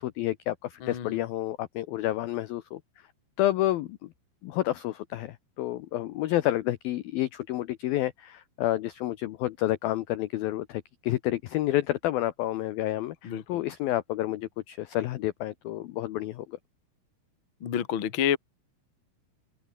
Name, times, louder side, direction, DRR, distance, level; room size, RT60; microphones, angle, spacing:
voice 1, 0.0-2.8 3.4-4.1 4.4-16.6, left 14 dB, 85° left, 2.0 m, -29 dB
voice 2, 0.8-1.2 13.2-13.4 17.6-18.4, left 9 dB, 70° left, 1.2 m, -28 dB
open air
omnidirectional pair, 5.5 m